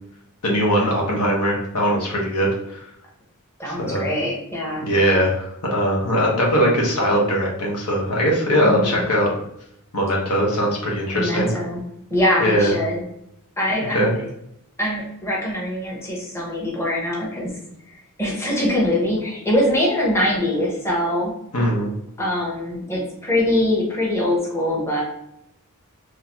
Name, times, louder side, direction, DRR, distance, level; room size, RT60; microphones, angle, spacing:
voice 1, 0.4-2.8 3.8-4.0 4.8-9.3 9.9-11.5 12.4-12.7 13.9-14.1 21.5-21.9, equal, 85° left, -2 dB, 1.3 m, -20 dB
voice 2, 3.6-4.8 8.6-9.0 11.1-11.8 12.1-13.0 13.6-14.1 14.8-17.5 18.2-21.3 22.2-25.0, left 1 dB, 10° left, -3 dB, 1.0 m, -23 dB
3.8 x 3.3 x 2.9 m, 0.77 s
head